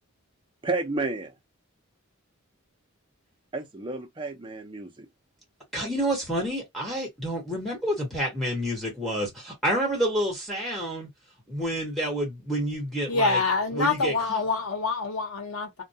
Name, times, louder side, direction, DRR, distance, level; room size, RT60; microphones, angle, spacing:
voice 1, 0.6-1.3 3.5-5.1, right 3 dB, 25° right, 0.5 m, -31 dB
voice 2, 5.7-11.1 11.5-13.4 13.7-14.4, equal, ahead, 1.1 m, -29 dB
voice 3, 13.1-15.8, left 4 dB, 90° left, 0.9 m, -26 dB
2.2 x 2.1 x 2.7 m
head